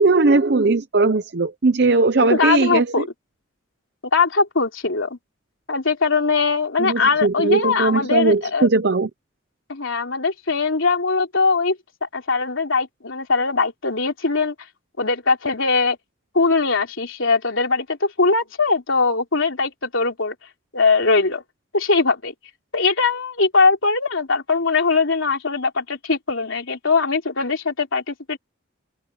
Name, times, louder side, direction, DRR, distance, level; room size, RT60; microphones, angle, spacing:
voice 1, 0.0-3.1 6.8-9.1, right 3 dB, 55° right, 0.7 m, -18 dB
voice 2, 2.2-3.0 4.1-5.2 5.7-8.7 9.7-14.5 15.0-16.0 16.3-20.3 20.7-21.4 21.7-22.3 22.7-28.4, left 4 dB, 85° left, 3.3 m, -21 dB
open air
head